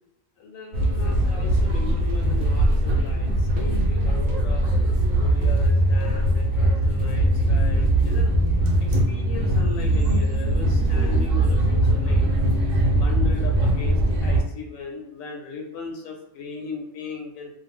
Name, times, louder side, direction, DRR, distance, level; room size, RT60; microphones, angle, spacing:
voice 1, 0.4-4.6 5.1-8.3 8.8-12.3 12.9-17.5, left 3 dB, 85° left, 2 dB, 1.0 m, -38 dB
sound 1, 0.7-14.4, right 1 dB, 80° right, 1.0 m, -21 dB
2.5 x 2.1 x 3.4 m, 0.80 s
omnidirectional pair, 1.3 m